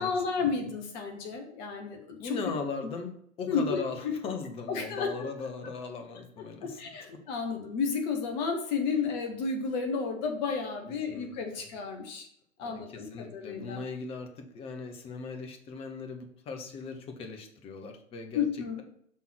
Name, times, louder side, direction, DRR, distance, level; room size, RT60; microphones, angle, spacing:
voice 1, 0.0-2.4 3.5-3.8 4.0-4.1 4.7-5.3 6.6-12.3 12.6-13.8 18.3-18.8, left 5 dB, 35° left, 3 dB, 1.0 m, -32 dB
voice 2, 2.2-6.8 7.1-7.2 11.1-11.6 12.6-18.4, left 4 dB, 15° left, 4 dB, 0.7 m, -39 dB
6.2 x 3.6 x 5.8 m, 0.67 s
figure-of-eight pair, 105°, 40 cm